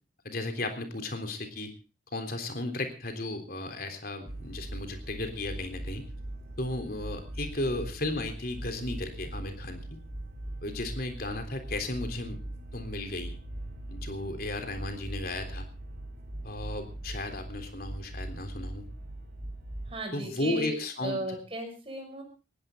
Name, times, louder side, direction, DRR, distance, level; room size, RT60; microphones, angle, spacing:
voice 1, 0.2-1.7 2.1-6.1 6.6-10.0 10.6-12.4 12.7-13.4 13.9-15.7 16.4-18.9 20.1-21.2, left 2 dB, 50° left, 6 dB, 3.5 m, -35 dB
sound 1, 4.3-19.9, right 1 dB, 50° right, 3.8 m, -40 dB
voice 2, 19.9-20.7 21.0-22.2, right 1 dB, 30° right, 4 dB, 5.7 m, -35 dB
20.0 x 16.0 x 3.8 m, 0.34 s
head